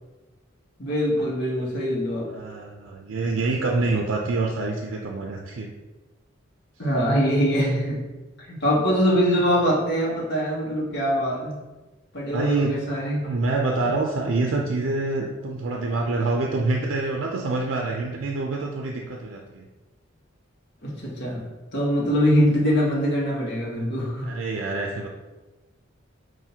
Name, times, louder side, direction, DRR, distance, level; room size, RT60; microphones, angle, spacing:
voice 1, 0.8-2.4 6.8-8.1 8.4-11.6 12.1-13.3 20.8-24.3, equal, 60° left, -4 dB, 1.2 m, -23 dB
voice 2, 2.3-5.7 12.3-12.7 13.2-19.7 24.2-25.1, right 3 dB, 85° right, 1 dB, 0.4 m, -26 dB
5.6 x 2.6 x 2.8 m, 1.2 s
head